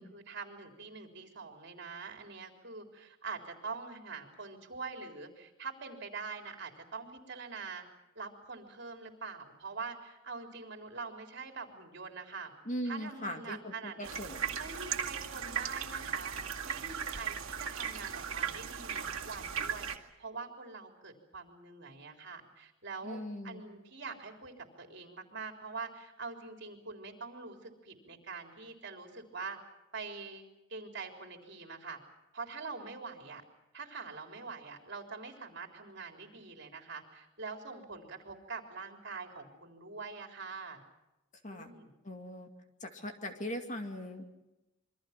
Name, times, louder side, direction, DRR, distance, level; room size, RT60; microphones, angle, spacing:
voice 1, 0.0-7.9 8.2-12.5 12.8-14.1 14.5-16.3 16.6-19.9 20.2-29.6 29.9-32.0 32.3-33.4 33.7-40.8 41.5-41.9, right 4 dB, 55° right, 3 dB, 3.9 m, -44 dB
voice 2, 12.7-14.4 23.0-23.6 41.4-41.7 42.0-42.5 42.8-44.3, equal, 35° left, 5 dB, 2.4 m, -39 dB
sound 1, 14.0-20.0, right 7 dB, 80° right, 2.1 m, -37 dB
27.5 x 24.0 x 6.0 m, 0.95 s
head